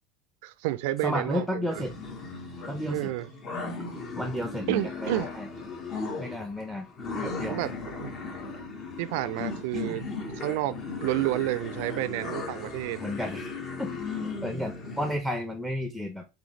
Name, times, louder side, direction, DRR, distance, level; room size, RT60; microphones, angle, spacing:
voice 1, 0.4-1.8 2.9-3.3 4.7-5.3 7.5-8.1 9.0-10.0 10.4-10.8 11.0-13.0, right 16 dB, 75° right, 0.3 m, -30 dB
voice 2, 1.0-1.9 2.7-3.1 4.2-5.5 6.2-6.9 7.2-7.6 13.0-13.9 14.4-16.2, left 1 dB, ahead, 0.6 m, -32 dB
sound 1, 1.7-15.2, left 3 dB, 40° left, 1.2 m, -37 dB
3.8 x 3.4 x 3.1 m
supercardioid pair, 115°, 0 cm